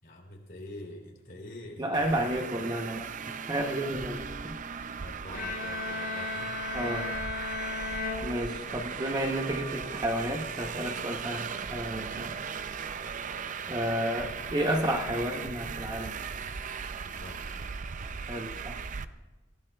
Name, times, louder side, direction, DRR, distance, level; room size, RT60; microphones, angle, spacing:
voice 1, 0.0-2.2 5.0-6.6 7.8-8.2 13.6-13.9 17.0-17.5, left 1 dB, 45° left, 0 dB, 3.4 m, -46 dB
voice 2, 1.8-3.1 3.5-4.2 4.5-4.6 6.7-7.1 8.2-12.3 13.7-16.2 18.3-18.8, right 1 dB, 20° right, 3 dB, 0.9 m, -31 dB
Traffic noise roadway noise, 1.9-19.0, right 6 dB, 40° right, 0.5 m, -38 dB
Bowed string instrument, 5.3-9.1, left 3 dB, 80° left, 2.4 m, -36 dB
27.5 x 16.0 x 2.4 m, 1.1 s
head